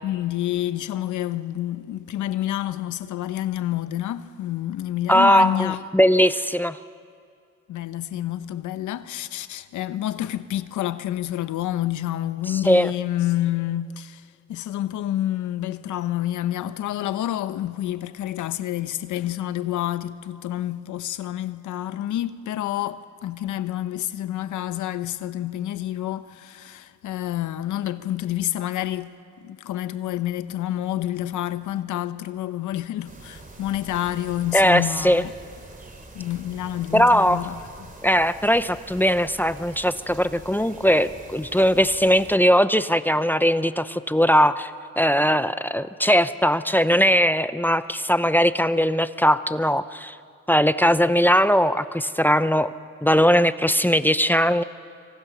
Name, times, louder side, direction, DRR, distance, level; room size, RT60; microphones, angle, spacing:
voice 1, 0.0-5.8 7.7-14.2 14.5-29.1 29.4-35.3 36.1-37.6, left 13 dB, 80° left, 1.0 m, -28 dB
voice 2, 5.1-6.8 12.5-12.9 34.5-35.2 36.9-37.4 38.0-44.7 45.0-50.2 50.5-52.7 53.0-54.6, equal, 5° left, 0.6 m, -19 dB
sound 1, 33.0-42.4, right 2 dB, 25° right, 3.4 m, -44 dB
26.0 x 25.0 x 6.2 m
cardioid pair, 90°, 30 cm